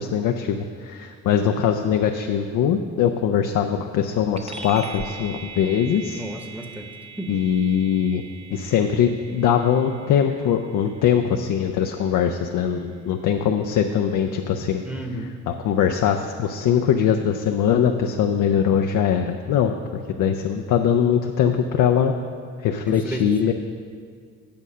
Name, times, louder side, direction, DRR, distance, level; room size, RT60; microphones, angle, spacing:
voice 1, 0.0-6.2 7.3-8.2 8.5-14.8 15.6-22.1 22.6-23.5, left 8 dB, 70° left, 5 dB, 0.6 m, -21 dB
sound 1, 4.4-14.2, right 4 dB, 20° right, 0.6 m, -42 dB
voice 2, 6.1-6.9 7.2-7.3 14.8-15.3 22.9-23.5, right 1 dB, 5° right, 4 dB, 1.0 m, -33 dB
8.7 x 6.2 x 5.5 m, 2.1 s
supercardioid pair, 65°, 32 cm